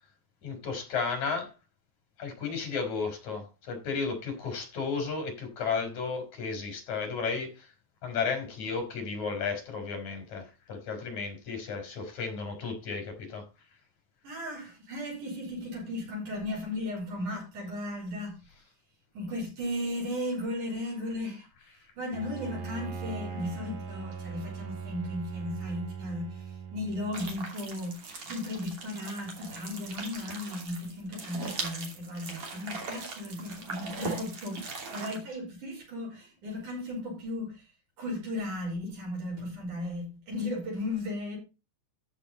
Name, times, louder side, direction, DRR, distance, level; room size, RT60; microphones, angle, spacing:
voice 1, 0.4-1.5 2.2-7.7 8.0-13.5, left 5 dB, 70° left, 5.2 m, -33 dB
voice 2, 14.2-18.4 19.2-21.5 22.0-37.7 38.0-41.4, left 1 dB, 85° right, 6.9 m, -36 dB
Bowed string instrument, 22.1-27.5, right 6 dB, 65° right, 2.6 m, -40 dB
sound 1, 27.1-35.2, right 4 dB, 50° right, 3.6 m, -40 dB
13.5 x 6.5 x 4.2 m
omnidirectional pair, 3.4 m